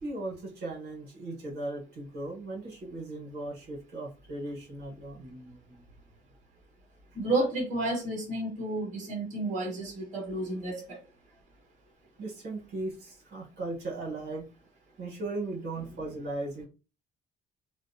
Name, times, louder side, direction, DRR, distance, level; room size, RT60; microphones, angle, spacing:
voice 1, 0.0-5.8 12.2-14.4 15.0-16.6, right 2 dB, 65° right, 1.2 m, -37 dB
voice 2, 7.1-11.0, right 2 dB, 40° right, 1.1 m, -31 dB
2.5 x 2.1 x 2.6 m
cardioid pair, 115°, 19 cm